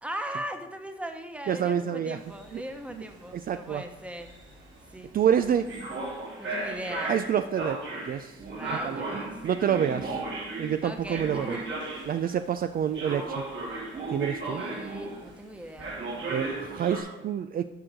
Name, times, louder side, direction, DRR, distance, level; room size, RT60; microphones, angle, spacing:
voice 1, 0.0-4.3 4.9-5.1 6.4-7.2 8.5-9.4 10.8-11.8 14.4-16.6, right 1 dB, 5° right, 6 dB, 1.1 m, -39 dB
voice 2, 1.5-2.2 2.5-2.6 2.9-3.0 3.3-3.8 5.1-5.7 7.1-8.4 8.7-9.0 9.4-10.2 10.6-11.6 12.1-13.4 14.1-14.6 16.3-17.7, right 9 dB, 50° right, 10 dB, 0.4 m, -27 dB
sound 1, 2.2-12.4 12.9-15.4 15.8-17.0, right 2 dB, 65° right, 3.5 m, -35 dB
12.5 x 4.5 x 5.0 m, 1.1 s
cardioid pair, 90°, 20 cm